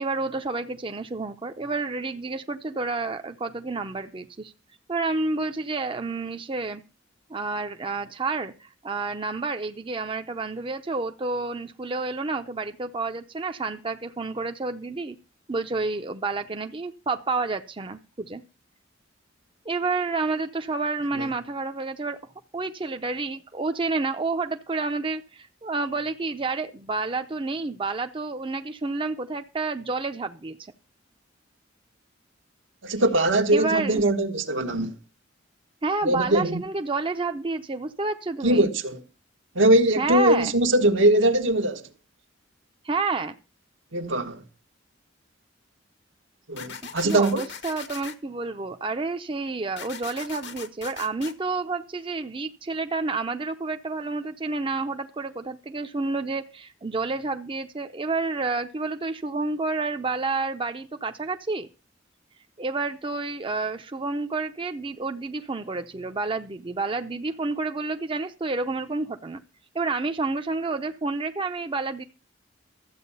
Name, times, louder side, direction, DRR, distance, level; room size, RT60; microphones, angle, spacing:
voice 1, 0.0-4.5 4.9-6.8 7.3-15.2 15.5-18.4 19.7-22.2 22.5-30.6 33.5-34.0 35.8-38.7 40.0-40.5 42.8-43.4 47.0-61.7 62.6-69.4 69.7-72.0, right 3 dB, 25° right, 0.6 m, -29 dB
voice 2, 32.8-34.9 36.0-36.6 38.4-39.0 39.5-41.8 43.9-44.4 46.5-47.4, right 1 dB, 75° right, 1.3 m, -21 dB
sound 1, 46.6-48.2 49.8-51.3, left 7 dB, 65° left, 1.1 m, -39 dB
13.0 x 8.1 x 5.5 m
head